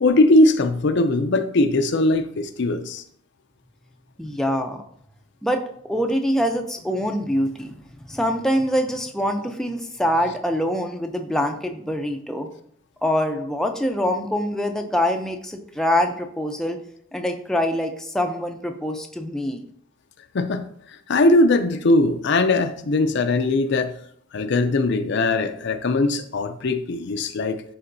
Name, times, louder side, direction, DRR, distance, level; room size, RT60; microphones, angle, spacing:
voice 1, 0.0-3.0 20.3-23.9 24.3-27.6, left 2 dB, 60° left, 0.5 m, -20 dB
voice 2, 4.2-4.8 5.4-5.6 5.9-7.8 8.1-12.5 13.0-16.8 17.1-19.6, equal, 5° left, 0.5 m, -24 dB
11.0 x 3.8 x 2.6 m
head